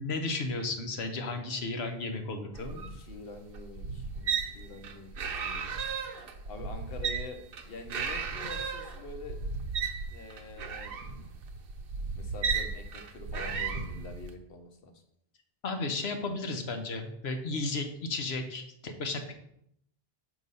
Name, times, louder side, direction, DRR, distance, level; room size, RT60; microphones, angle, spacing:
voice 1, 0.0-2.8 15.6-19.3, left 3 dB, 90° left, 5 dB, 1.1 m, -34 dB
voice 2, 2.0-5.1 5.4-5.8 6.5-9.4 10.1-11.0 12.2-15.0, left 3 dB, 65° left, 6 dB, 1.0 m, -46 dB
sound 1, 2.5-14.3, right 5 dB, 70° right, 0.8 m, -35 dB
6.3 x 3.0 x 5.4 m, 0.74 s
omnidirectional pair, 1.0 m